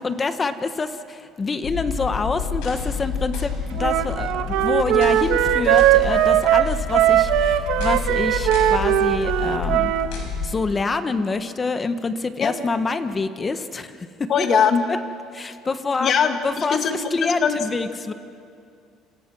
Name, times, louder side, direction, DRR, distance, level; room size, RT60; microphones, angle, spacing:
voice 1, 0.0-9.9 10.4-14.5 14.9-15.0 15.3-16.1 16.4-18.1, left 4 dB, 20° left, 10 dB, 1.1 m, -26 dB
sound 1, 1.6-10.5, left 5 dB, 85° left, 6.5 m, -29 dB
Wind instrument woodwind instrument, 3.8-10.1, right 12 dB, 75° right, 1.2 m, -19 dB
voice 2, 14.3-14.8 16.0-17.6, left 6 dB, 45° left, 6 dB, 2.0 m, -21 dB
27.5 x 27.5 x 6.1 m, 2.4 s
cardioid pair, 140°, 0 cm